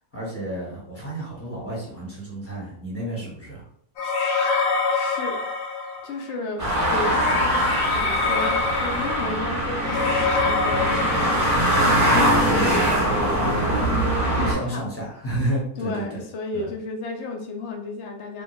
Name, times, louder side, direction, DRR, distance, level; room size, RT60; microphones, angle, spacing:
voice 1, 0.1-3.7 12.3-12.8 14.3-16.2 16.5-16.7, right 1 dB, 10° left, -6 dB, 0.9 m, -31 dB
sound 1, 4.0-6.2 7.0-11.9, left 4 dB, 65° left, 1.0 m, -26 dB
voice 2, 4.9-5.5 6.0-6.6 6.9-11.9 12.4-14.9 15.8-18.4, left 3 dB, 80° left, 2 dB, 0.6 m, -33 dB
sound 2, 6.6-14.5, right 1 dB, 20° right, 0.4 m, -22 dB
3.2 x 2.3 x 3.1 m, 0.63 s
omnidirectional pair, 1.8 m